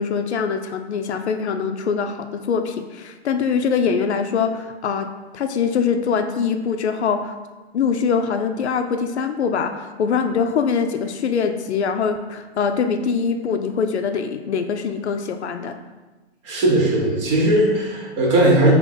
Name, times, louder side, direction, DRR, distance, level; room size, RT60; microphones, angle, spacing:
voice 1, 0.0-5.1 5.3-7.3 7.7-15.8, left 6 dB, 75° left, 6 dB, 0.5 m, -23 dB
voice 2, 16.4-18.7, right 1 dB, 30° right, -2 dB, 0.7 m, -18 dB
3.6 x 3.0 x 3.9 m, 1.2 s
hypercardioid pair, 150°, 34 cm